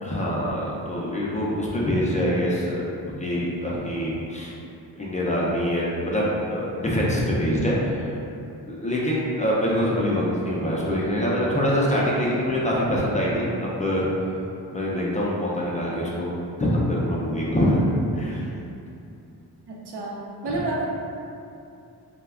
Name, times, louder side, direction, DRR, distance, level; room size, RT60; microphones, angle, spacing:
voice 1, 0.0-2.8 3.2-4.5 4.9-8.0 8.7-14.1 14.7-16.3 16.6-17.8 18.1-18.4 20.4-20.5, equal, 20° left, -5 dB, 0.4 m, -24 dB
voice 2, 19.7-20.9, right 2 dB, 85° right, -3 dB, 0.6 m, -30 dB
2.2 x 2.1 x 3.4 m, 2.7 s
wide cardioid pair, 105°, 39 cm